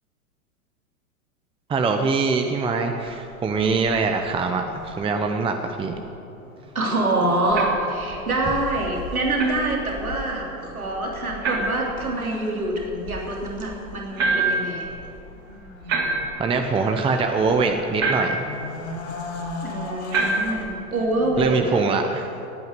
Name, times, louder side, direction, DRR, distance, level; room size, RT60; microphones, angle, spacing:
voice 1, 1.7-5.9 16.4-18.4 21.4-22.3, right 4 dB, 15° right, 5 dB, 0.8 m, -23 dB
sound 1, 3.0-21.6, left 2 dB, 35° left, 3.3 m, -39 dB
voice 2, 6.7-14.9 19.6-21.8, right 2 dB, 85° right, -1 dB, 3.1 m, -25 dB
sound 2, 7.5-7.9 9.4-9.6 11.4-11.8 14.2-14.7 15.9-16.5 18.0-18.5 20.1-20.6, right 3 dB, 35° right, 3.2 m, -24 dB
16.0 x 9.5 x 9.3 m, 2.8 s
figure-of-eight pair, 100°, 42 cm